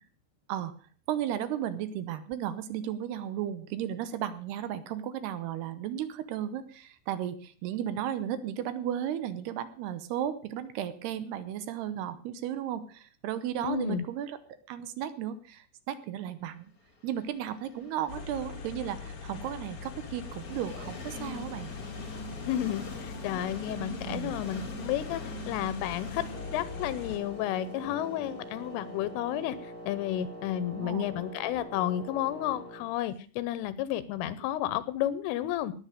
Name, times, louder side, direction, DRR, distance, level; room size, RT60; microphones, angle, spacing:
voice 1, 1.1-14.4 14.7-16.7 17.0-21.7 24.0-24.3 30.7-31.0, right 10 dB, 75° right, 13 dB, 2.4 m, -34 dB
voice 2, 13.6-14.0 22.5-26.3 26.5-35.7, left 12 dB, 80° left, 16 dB, 3.3 m, -32 dB
Train, 17.0-32.8, left 2 dB, 25° left, 2.0 m, -45 dB
sound 1, 18.1-27.2, left 5 dB, 50° left, 1.7 m, -42 dB
Wind instrument woodwind instrument, 26.3-33.0, equal, 15° right, 2.3 m, -44 dB
19.0 x 8.1 x 6.5 m, 0.40 s
omnidirectional pair, 5.8 m